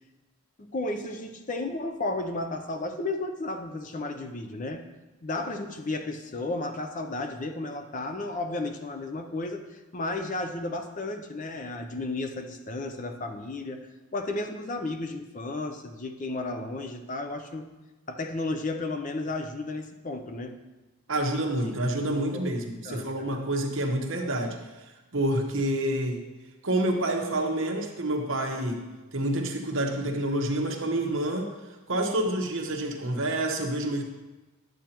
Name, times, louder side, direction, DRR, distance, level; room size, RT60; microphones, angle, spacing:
voice 1, 0.6-4.8 5.2-17.7 18.1-20.5 21.6-22.4 22.8-23.3, left 2 dB, 35° left, 6 dB, 0.5 m, -33 dB
voice 2, 21.1-24.6 25.1-26.2 26.6-28.8 29.1-31.5 31.9-34.0, right 1 dB, 65° right, 2 dB, 1.1 m, -28 dB
10.5 x 7.7 x 2.9 m, 1.1 s
head